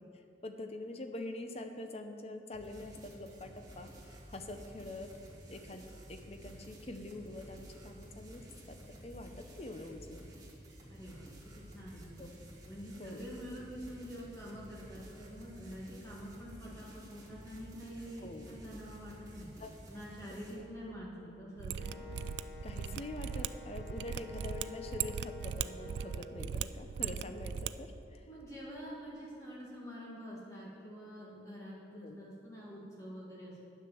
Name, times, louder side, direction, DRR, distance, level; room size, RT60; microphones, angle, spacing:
voice 1, 0.0-5.1 5.5-10.3 12.2-12.4 13.0-13.3 18.2-18.5 19.6-19.7 20.2-20.3 22.6-28.3 32.0-32.2, left 2 dB, 35° left, 6 dB, 0.7 m, -45 dB
sound 1, 2.5-20.5, equal, 20° right, 1.8 m, -52 dB
voice 2, 10.9-12.1 12.7-19.5 19.9-22.0 28.3-33.6, equal, 20° left, -7 dB, 1.8 m, -47 dB
Mechanisms, 21.6-27.7 28.0-28.1, right 8 dB, 85° right, 0.3 m, -38 dB
Wind instrument woodwind instrument, 21.8-26.4, left 4 dB, 60° left, 1.3 m, -50 dB
9.6 x 6.6 x 7.0 m, 2.7 s
head